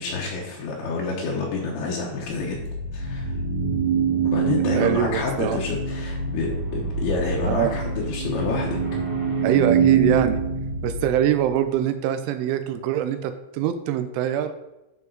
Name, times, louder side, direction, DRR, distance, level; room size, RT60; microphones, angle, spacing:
voice 1, 0.0-2.6 2.9-3.3 4.2-8.8, left 4 dB, 70° left, -2 dB, 3.2 m, -28 dB
sound 1, 2.2-11.5, right 5 dB, 55° right, 1.6 m, -25 dB
voice 2, 4.7-5.6 7.5-7.8 9.4-10.4 10.8-14.5, right 10 dB, 80° right, 10 dB, 3.0 m, -23 dB
11.5 x 5.4 x 4.0 m, 0.96 s
omnidirectional pair, 5.7 m